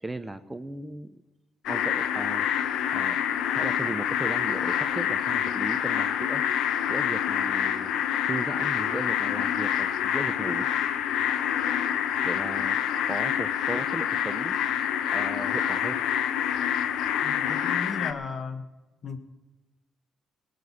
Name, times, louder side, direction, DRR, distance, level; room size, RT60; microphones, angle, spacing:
voice 1, 0.0-1.2 1.7-3.2 3.5-10.7 12.0-12.8 13.1-14.6 15.1-16.0, right 2 dB, 15° right, 11 dB, 0.6 m, -37 dB
sound 1, 1.6-18.1, left 9 dB, 85° left, 0.8 m, -27 dB
voice 2, 17.2-18.6 19.0-19.2, left 5 dB, 45° left, 9 dB, 1.4 m, -35 dB
18.0 x 6.8 x 8.6 m, 1.1 s
cardioid pair, 90°, 0 cm